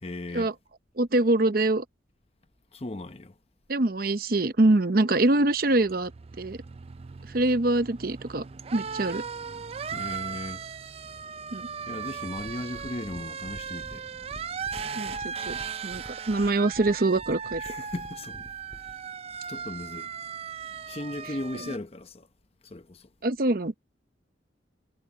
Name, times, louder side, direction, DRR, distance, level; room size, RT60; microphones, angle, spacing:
voice 1, 0.0-0.5 2.7-3.3 9.9-10.6 11.9-14.1 17.6-18.5 19.5-20.1 20.9-22.3 22.6-23.1, left 2 dB, 35° left, 0.8 m, -37 dB
voice 2, 1.0-1.8 3.7-6.1 6.4-6.6 7.3-8.4 8.7-9.2 11.5-11.7 15.0-15.6 15.8-17.6 23.2-23.7, right 2 dB, 50° right, 0.8 m, -24 dB
sound 1, 5.3-21.8, right 6 dB, 35° right, 0.4 m, -38 dB
sound 2, 12.3-19.0, equal, 5° right, 4.9 m, -48 dB
head